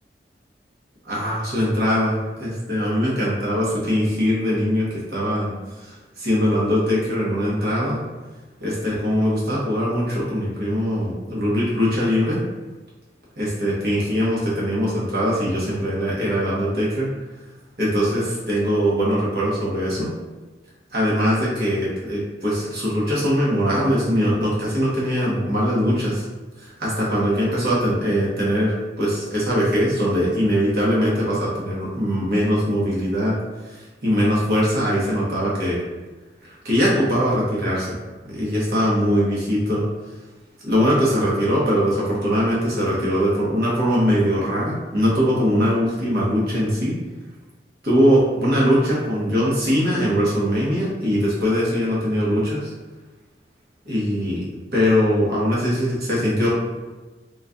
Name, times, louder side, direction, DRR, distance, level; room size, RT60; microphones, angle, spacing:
voice 1, 1.1-5.5 5.8-8.0 8.6-12.4 13.4-17.1 17.8-20.1 20.9-26.2 26.6-33.3 34.0-35.8 36.6-37.9 38.3-39.8 40.6-46.9 47.8-52.7 53.8-54.4 54.7-56.5, equal, 60° right, -7 dB, 1.2 m, -21 dB
4.0 x 3.2 x 2.5 m, 1.2 s
head